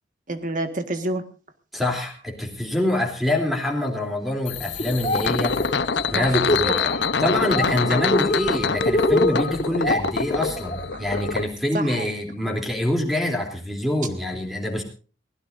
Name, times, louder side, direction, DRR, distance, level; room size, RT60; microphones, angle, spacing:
voice 1, 0.3-1.2 6.1-6.4 6.7-7.1 10.9-11.2 11.7-12.1, right 2 dB, 45° right, 7 dB, 1.7 m, -29 dB
voice 2, 1.7-5.8 6.1-6.7 7.2-14.8, left 1 dB, ahead, 1 dB, 3.1 m, -25 dB
sound 1, 4.5-11.4, left 5 dB, 85° left, 0.8 m, -25 dB
Laughter, 4.8-5.2 5.5-6.9 7.3-7.7 8.0-10.8, left 1 dB, 30° left, 3.7 m, -24 dB
22.5 x 16.5 x 2.6 m, 0.37 s
head